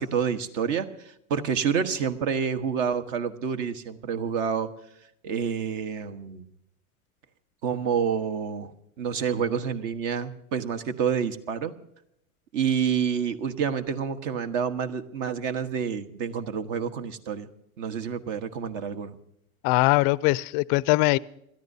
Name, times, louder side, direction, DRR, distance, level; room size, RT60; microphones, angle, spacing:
voice 1, 0.0-4.7 5.2-6.5 7.6-8.7 9.0-11.7 12.5-17.5 17.8-19.2, right 7 dB, 55° right, 1.4 m, -28 dB
voice 2, 19.6-21.2, left 21 dB, 40° left, 0.4 m, -21 dB
28.0 x 13.0 x 2.7 m
hypercardioid pair, 100°, 42 cm